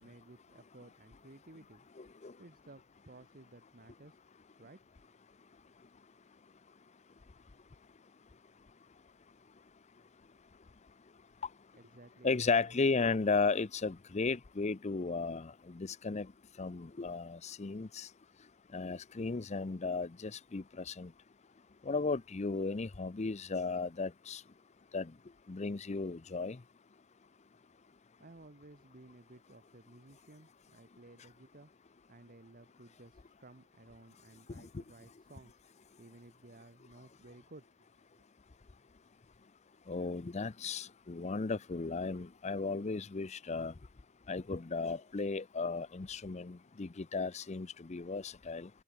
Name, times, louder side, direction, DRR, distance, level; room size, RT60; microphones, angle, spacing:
voice 1, 0.0-1.9 2.4-4.2 4.6-4.9 11.7-12.8 28.2-31.7 32.1-38.2, right 2 dB, 40° right, 1.2 m, -57 dB
voice 2, 2.0-2.3 12.2-16.3 16.6-18.1 18.7-21.1 21.9-24.4 24.9-25.1 25.5-26.6 39.9-43.7 44.3-48.7, left 4 dB, 30° left, 0.5 m, -35 dB
open air
head